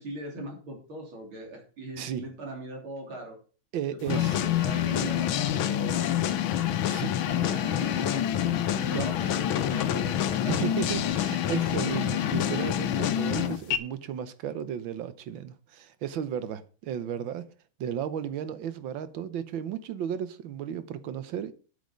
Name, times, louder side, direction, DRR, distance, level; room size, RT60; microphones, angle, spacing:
voice 1, 0.0-3.4 3.9-6.3 7.3-10.5, right 1 dB, 90° right, 4.1 m, -40 dB
voice 2, 3.7-4.4 5.1-5.2 6.9-7.2 7.5-7.6 8.9-9.2 10.5-17.5 17.8-21.5, right 9 dB, 75° right, 1.7 m, -34 dB
sound 1, 4.1-13.8, left 11 dB, 80° left, 1.6 m, -27 dB
9.6 x 8.3 x 5.2 m
omnidirectional pair, 2.2 m